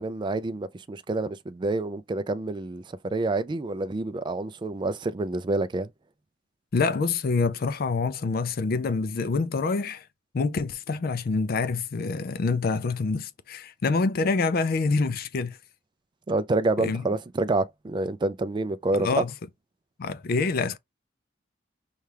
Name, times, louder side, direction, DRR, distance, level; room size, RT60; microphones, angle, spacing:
voice 1, 0.0-2.8 3.1-5.9 16.3-19.2, right 2 dB, 25° right, 0.3 m, -27 dB
voice 2, 6.7-10.1 10.3-15.6 16.8-17.0 18.9-19.3 20.0-20.8, left 4 dB, 50° left, 0.4 m, -26 dB
5.5 x 2.4 x 3.3 m
head